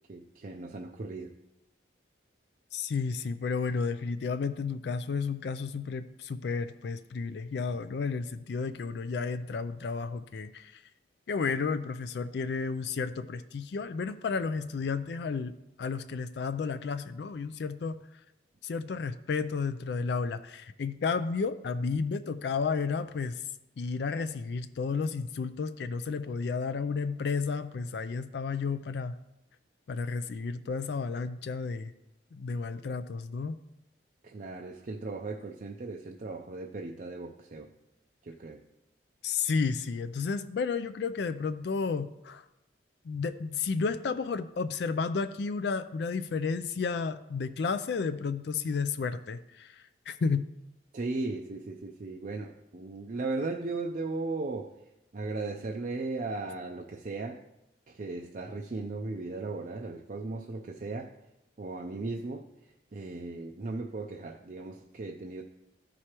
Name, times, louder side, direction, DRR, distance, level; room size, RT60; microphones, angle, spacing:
voice 1, 0.1-1.3 34.2-37.7 38.2-38.6 50.9-54.7 55.1-57.4 57.9-61.1 61.6-62.5 62.9-65.4, right 3 dB, 45° right, 1 dB, 0.4 m, -37 dB
voice 2, 2.7-10.8 11.3-15.5 15.8-18.0 18.6-23.4 23.8-29.1 29.9-31.9 32.3-33.6 39.2-42.4 43.0-50.5, left 5 dB, 65° left, 11 dB, 0.3 m, -32 dB
13.5 x 4.8 x 2.9 m, 0.89 s
head